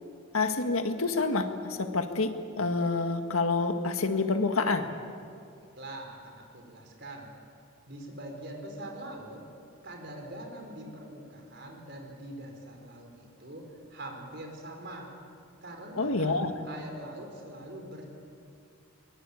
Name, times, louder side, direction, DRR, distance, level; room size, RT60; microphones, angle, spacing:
voice 1, 0.3-4.9 16.0-16.5, left 3 dB, 80° left, 6 dB, 1.8 m, -28 dB
voice 2, 5.7-7.3 7.9-9.4 9.8-15.1 15.6-16.4 16.6-18.1, right 1 dB, 50° right, 2 dB, 4.8 m, -43 dB
24.0 x 20.5 x 8.5 m, 2.5 s
head